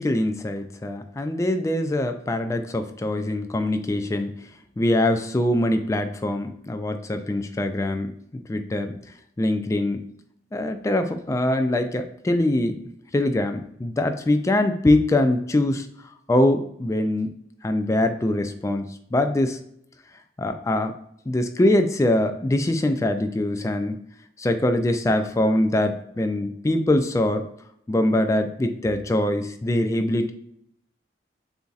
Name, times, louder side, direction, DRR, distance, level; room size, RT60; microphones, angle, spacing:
voice 1, 0.0-4.3 4.8-8.1 8.5-8.9 9.4-10.0 10.5-15.9 16.3-17.3 17.6-19.6 20.4-20.9 21.3-24.0 24.4-27.4 27.9-30.3, left 1 dB, 15° left, 7 dB, 0.3 m, -23 dB
6.9 x 2.7 x 2.4 m, 0.71 s
head